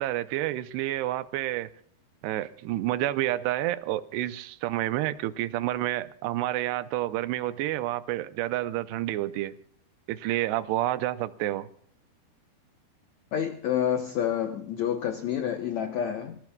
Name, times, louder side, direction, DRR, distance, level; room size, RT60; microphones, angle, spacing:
voice 1, 0.0-1.7 2.2-9.5 10.1-11.7, right 15 dB, 80° right, 2.8 m, -29 dB
voice 2, 13.3-16.4, left 9 dB, 85° left, 1.5 m, -28 dB
25.5 x 20.0 x 2.3 m
omnidirectional pair, 4.8 m